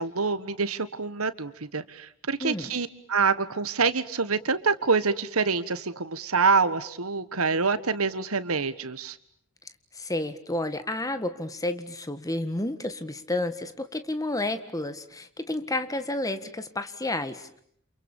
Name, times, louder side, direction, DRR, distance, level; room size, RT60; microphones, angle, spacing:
voice 1, 0.0-9.2, right 4 dB, 80° right, 14 dB, 1.6 m, -26 dB
voice 2, 2.4-2.7 9.9-17.6, left 2 dB, 15° left, 10 dB, 1.7 m, -31 dB
29.5 x 28.0 x 7.2 m, 0.66 s
head